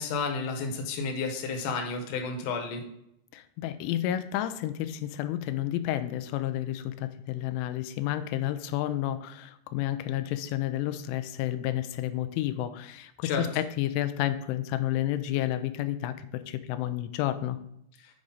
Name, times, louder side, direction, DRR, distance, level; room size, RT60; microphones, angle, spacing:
voice 1, 0.0-2.8 13.2-13.5, left 4 dB, 70° left, 3 dB, 2.8 m, -31 dB
voice 2, 3.3-17.6, left 13 dB, 90° left, 11 dB, 3.0 m, -31 dB
8.5 x 4.9 x 3.9 m, 0.77 s
omnidirectional pair, 5.4 m